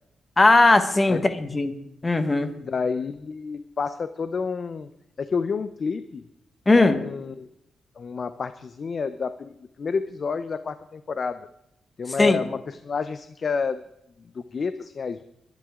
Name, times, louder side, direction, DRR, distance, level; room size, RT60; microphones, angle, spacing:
voice 1, 0.4-1.7 2.0-2.5 6.7-7.0 12.2-12.4, left 2 dB, 20° left, 9 dB, 1.4 m, -18 dB
voice 2, 2.5-4.9 5.2-6.2 6.7-7.5 8.0-11.5 12.0-13.8 14.3-15.2, left 5 dB, 45° left, 12 dB, 0.6 m, -29 dB
22.0 x 10.5 x 3.7 m, 0.81 s
wide cardioid pair, 130°, 0 cm